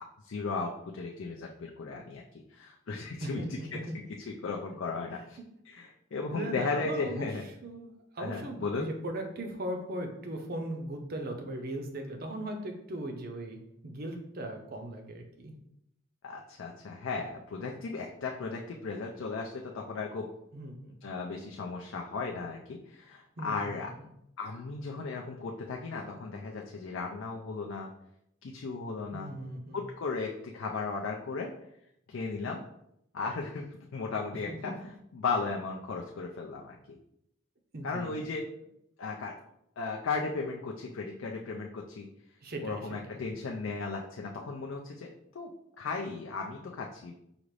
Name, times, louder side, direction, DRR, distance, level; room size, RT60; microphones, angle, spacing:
voice 1, 0.2-2.2 2.5-3.8 4.4-5.4 5.7-7.4 8.2-8.9 16.2-20.3 21.0-23.9 24.4-27.9 28.4-29.3 29.7-31.5 32.1-32.6 33.1-34.7 35.1-36.8 37.8-38.5 39.0-39.3 39.8-42.1 42.6-45.5 45.8-47.1, left 4 dB, 65° left, 0 dB, 0.4 m, -36 dB
voice 2, 3.2-3.9 6.3-7.3 7.6-15.5 20.5-20.9 23.4-24.1 29.1-29.8 34.5-34.8 37.7-38.2 42.4-43.0, right 1 dB, 45° right, 4 dB, 0.6 m, -38 dB
5.0 x 2.5 x 3.2 m, 0.77 s
head